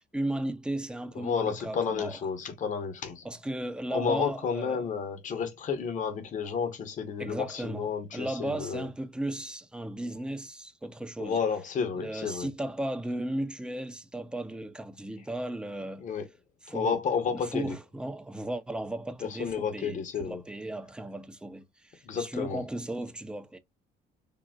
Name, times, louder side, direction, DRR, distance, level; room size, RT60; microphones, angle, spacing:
voice 1, 0.1-2.2 3.2-4.9 7.2-11.4 12.0-16.1 16.6-17.0 17.3-23.6, right 1 dB, 5° right, 0.5 m, -35 dB
voice 2, 1.1-3.2 3.9-8.9 11.2-12.5 16.0-16.2 16.7-17.7 19.2-20.4 22.0-22.6, left 6 dB, 50° left, 1.0 m, -31 dB
3.9 x 2.1 x 2.3 m
cardioid pair, 110°, 17 cm